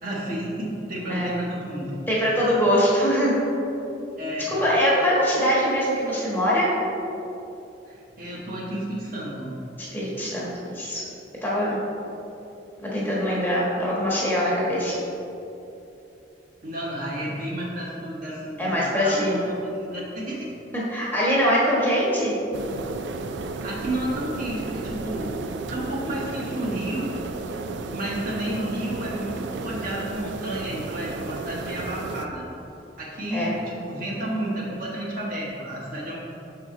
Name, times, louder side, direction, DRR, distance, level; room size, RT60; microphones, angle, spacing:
voice 1, 0.0-1.9 4.2-4.5 7.9-9.5 16.6-20.5 23.6-25.3 25.7-27.1 27.9-32.4 33.0-36.2, right 1 dB, 50° right, -5 dB, 1.1 m, -31 dB
voice 2, 2.1-3.4 4.5-6.7 9.9-11.0 11.4-11.8 12.9-15.0 18.6-19.5 20.7-22.4 33.3-33.5, equal, 10° left, -6 dB, 1.3 m, -23 dB
sound 1, 22.5-32.3, right 3 dB, 75° right, 0.4 m, -33 dB
6.1 x 4.7 x 3.7 m, 2.9 s
head